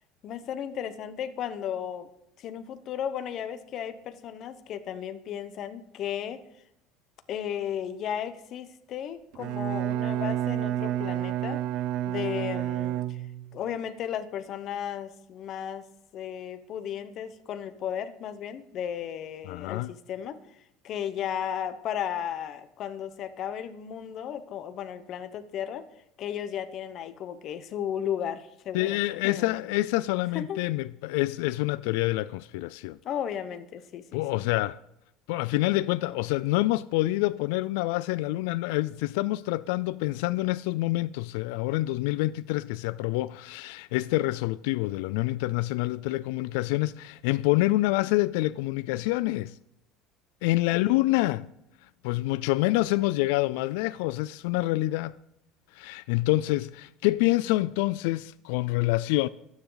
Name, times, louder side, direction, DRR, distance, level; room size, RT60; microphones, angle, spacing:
voice 1, 0.2-2.1 2.4-6.4 7.3-11.6 12.1-13.3 13.5-15.9 16.1-20.4 20.8-25.9 26.2-29.0 29.2-29.6 30.3-30.7 33.0-34.4 50.7-51.0, left 9 dB, 35° left, 1.0 m, -34 dB
Bowed string instrument, 9.3-13.6, right 13 dB, 50° right, 0.5 m, -30 dB
voice 2, 19.5-19.9 28.7-33.0 34.1-34.8 35.3-49.6 50.4-51.5 52.0-55.1 55.7-59.3, left 18 dB, 85° left, 0.4 m, -27 dB
24.5 x 9.7 x 4.0 m
cardioid pair, 180°, 0 cm